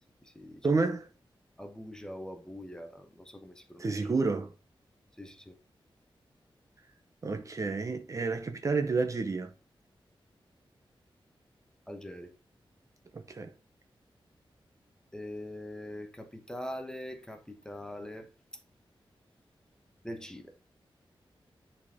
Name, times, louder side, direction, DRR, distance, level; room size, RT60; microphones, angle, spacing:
voice 1, 0.6-1.1 3.8-4.5 7.2-9.5 13.1-13.5, right 4 dB, 35° right, 0.7 m, -30 dB
voice 2, 1.6-3.9 5.2-5.6 11.9-12.3 15.1-18.3 20.0-20.5, left 1 dB, 10° left, 1.0 m, -42 dB
10.5 x 4.3 x 3.6 m
wide cardioid pair, 180°, 9 cm